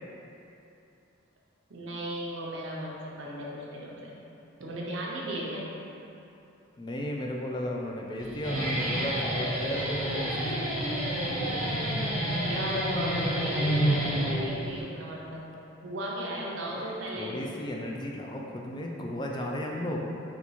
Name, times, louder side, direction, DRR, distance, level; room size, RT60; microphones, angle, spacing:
voice 1, 1.7-4.2 4.6-5.7 12.4-15.4 15.8-17.4, right 1 dB, 65° right, -4 dB, 0.7 m, -36 dB
voice 2, 6.8-10.5 16.7-16.9 17.2-20.0, left 1 dB, 20° left, -1 dB, 0.3 m, -34 dB
Guitar, 8.2-14.8, equal, 5° right, 1.3 m, -29 dB
4.4 x 2.3 x 4.1 m, 2.7 s
head